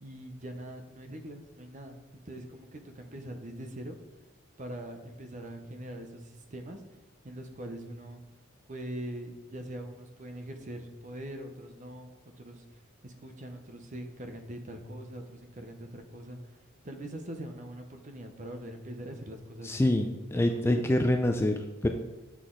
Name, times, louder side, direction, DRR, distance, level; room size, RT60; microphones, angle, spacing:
voice 1, 0.0-2.0 2.3-4.0 4.6-6.8 7.2-8.2 8.7-12.6 13.0-16.6 16.8-20.0 20.3-20.9, right 1 dB, 35° right, 6 dB, 0.7 m, -42 dB
voice 2, 19.6-21.9, left 1 dB, 10° left, 5 dB, 0.3 m, -26 dB
8.0 x 6.0 x 3.8 m, 1.1 s
head